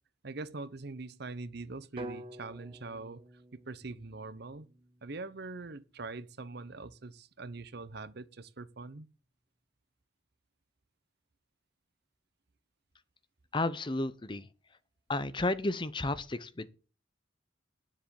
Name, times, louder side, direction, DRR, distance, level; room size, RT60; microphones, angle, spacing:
voice 1, 0.2-4.7 5.0-9.1, right 3 dB, 55° right, 0.8 m, -43 dB
sound 1, 2.0-6.0, right 1 dB, 30° right, 1.1 m, -48 dB
voice 2, 13.5-14.4 15.1-16.7, left 2 dB, 25° left, 0.7 m, -32 dB
10.5 x 7.3 x 7.0 m
head